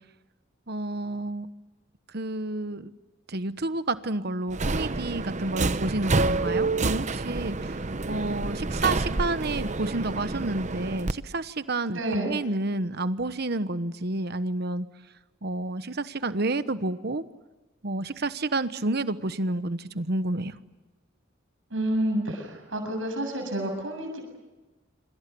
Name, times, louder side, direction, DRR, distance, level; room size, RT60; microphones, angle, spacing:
voice 1, 0.7-1.5 2.1-2.9 3.3-14.9 15.4-17.3 17.8-20.6, right 2 dB, 55° right, 12 dB, 1.1 m, -30 dB
Subway metro underground, 4.5-11.1, right 3 dB, 35° right, 0.8 m, -28 dB
voice 2, 11.9-12.3 21.7-24.2, right 1 dB, 75° right, 3 dB, 7.5 m, -29 dB
26.5 x 26.0 x 7.0 m, 1.1 s
head